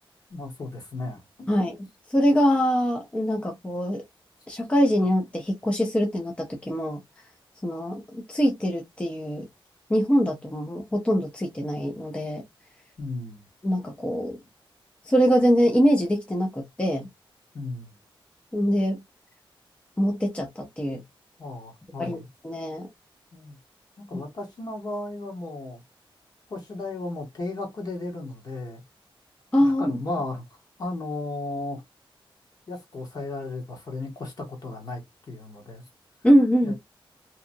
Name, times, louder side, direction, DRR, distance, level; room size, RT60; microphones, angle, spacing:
voice 1, 0.3-1.6 13.0-13.5 17.5-18.0 21.4-22.3 23.3-23.6 24.0-25.8 26.5-28.8 29.6-31.8 32.7-35.8 36.6-36.7, left 2 dB, 45° left, 1.1 m, -35 dB
voice 2, 2.1-4.0 4.5-7.0 7.6-9.5 9.9-12.4 13.6-14.4 15.1-17.1 18.5-19.0 20.0-21.0 22.0-22.2 22.4-22.9 29.5-30.0 36.2-36.7, equal, 15° left, 0.5 m, -23 dB
2.8 x 2.3 x 2.6 m
wide cardioid pair, 170°, 9 cm